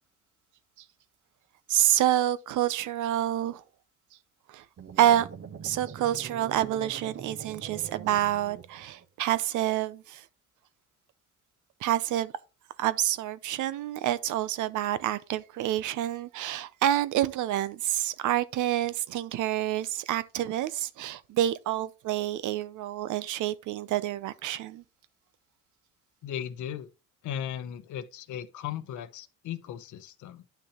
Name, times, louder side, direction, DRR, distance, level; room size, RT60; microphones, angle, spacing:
voice 1, 1.7-3.6 4.5-4.6 5.0-5.3 5.6-10.2 11.8-12.3 12.8-24.8, right 12 dB, 70° right, 0.7 m, -28 dB
sound 1, 4.8-9.1, right 6 dB, 40° right, 1.0 m, -44 dB
voice 2, 26.2-26.9 27.2-30.4, left 10 dB, 70° left, 0.8 m, -37 dB
9.9 x 5.9 x 3.0 m
cardioid pair, 115°, 31 cm